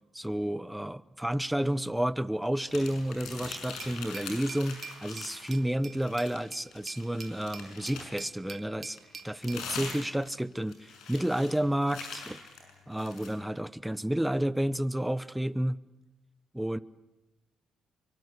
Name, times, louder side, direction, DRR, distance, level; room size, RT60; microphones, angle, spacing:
voice 1, 0.1-9.0 9.2-12.4 12.9-15.8 16.5-16.8, right 1 dB, 5° right, 16 dB, 0.8 m, -31 dB
sound 1, 2.7-5.6 5.9-8.3 9.0-13.4, left 5 dB, 85° left, 6.5 m, -43 dB
Glass, 3.8-9.7, right 6 dB, 45° right, 1.2 m, -47 dB
23.5 x 23.5 x 8.3 m, 1.0 s
cardioid pair, 90°, 0 cm